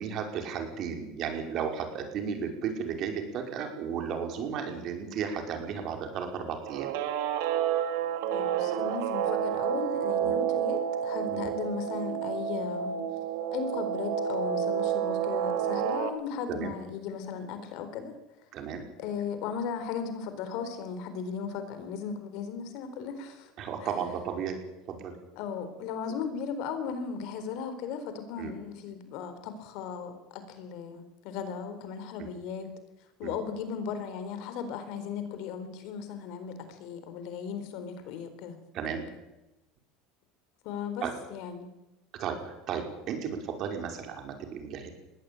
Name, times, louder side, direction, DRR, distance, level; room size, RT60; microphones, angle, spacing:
voice 1, 0.0-6.9 10.2-10.4 11.3-11.4 16.5-16.7 18.5-18.8 23.6-24.6 24.9-25.1 28.4-28.5 32.2-32.3 33.2-33.3 38.7-39.0 41.0-41.1 42.1-44.9, right 7 dB, 45° right, 4 dB, 5.3 m, -34 dB
Guitar, 6.7-16.1, right 9 dB, 75° right, 2.5 m, -30 dB
voice 2, 8.3-13.0 13.5-18.1 19.0-23.5 23.8-23.9 25.4-32.7 33.2-38.5 40.6-41.0 41.3-41.7, left 6 dB, 65° left, 10 dB, 4.1 m, -36 dB
21.0 x 16.5 x 9.1 m, 0.98 s
supercardioid pair, 135°, 0 cm